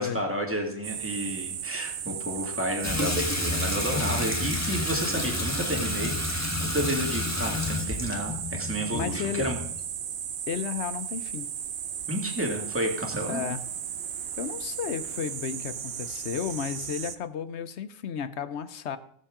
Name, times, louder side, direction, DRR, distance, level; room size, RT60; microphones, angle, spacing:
voice 1, 0.0-9.6 12.1-13.4, equal, 10° right, 1 dB, 2.1 m, -31 dB
sound 1, 0.8-17.2, right 9 dB, 55° right, 0.8 m, -35 dB
Water tap faucet / Sink (filling or washing), 2.8-9.8, left 2 dB, 15° left, 1.2 m, -30 dB
voice 2, 8.9-9.4 10.5-11.5 13.3-13.6 14.4-19.0, left 7 dB, 60° left, 13 dB, 1.0 m, -33 dB
21.0 x 7.3 x 3.7 m, 0.64 s
omnidirectional pair, 1.4 m